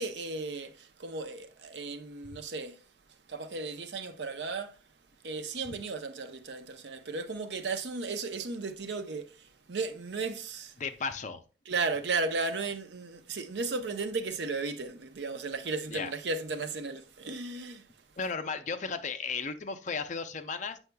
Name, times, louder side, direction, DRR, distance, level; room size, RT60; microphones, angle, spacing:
voice 1, 0.0-2.8 3.3-4.8 5.2-10.7 11.7-17.9, right 3 dB, 75° right, 0.7 m, -35 dB
voice 2, 10.8-11.4 15.9-16.1 18.2-20.8, left 5 dB, 45° left, 0.6 m, -35 dB
8.0 x 5.6 x 2.3 m
head